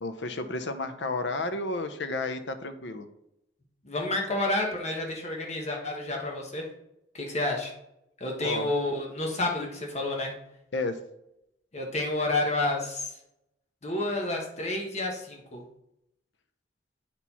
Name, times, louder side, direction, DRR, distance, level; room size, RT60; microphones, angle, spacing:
voice 1, 0.0-3.1 8.4-8.7 10.7-11.0, left 2 dB, 70° left, 9 dB, 0.8 m, -32 dB
voice 2, 3.8-6.7 7.1-7.7 8.2-10.3 11.7-13.1 13.8-15.6, left 2 dB, 40° left, 0 dB, 1.3 m, -30 dB
8.6 x 4.5 x 4.2 m, 0.82 s
head